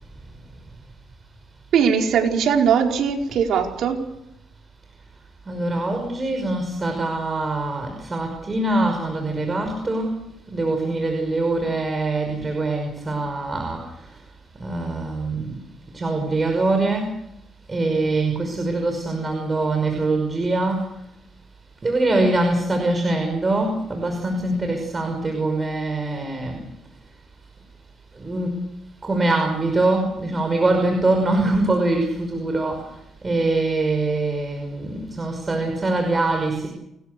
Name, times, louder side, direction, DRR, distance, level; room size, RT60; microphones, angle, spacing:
voice 1, 1.7-4.0, right 7 dB, 75° right, 2 dB, 4.6 m, -20 dB
voice 2, 5.5-10.2 10.5-13.8 14.6-15.6 15.9-17.1 17.7-20.9 21.8-26.6 28.2-28.5 29.0-32.8 33.2-36.7, right 2 dB, 25° right, 4 dB, 5.6 m, -23 dB
28.5 x 20.5 x 6.9 m, 0.82 s
cardioid pair, 90°, 0 cm